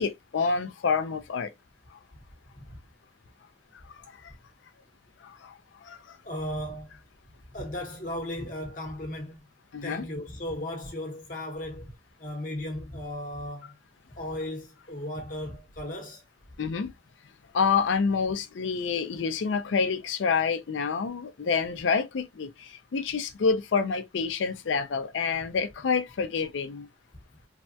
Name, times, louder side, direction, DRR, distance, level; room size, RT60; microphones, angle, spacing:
voice 1, 0.0-1.5 1.9-2.0 3.8-4.3 5.2-6.2 9.7-10.1 16.6-16.9 17.5-26.9, left 5 dB, 85° left, 0.4 m, -28 dB
voice 2, 6.2-7.0 7.5-9.4 9.8-13.7 14.1-16.2, left 1 dB, 45° left, 0.9 m, -36 dB
3.2 x 2.2 x 2.6 m
head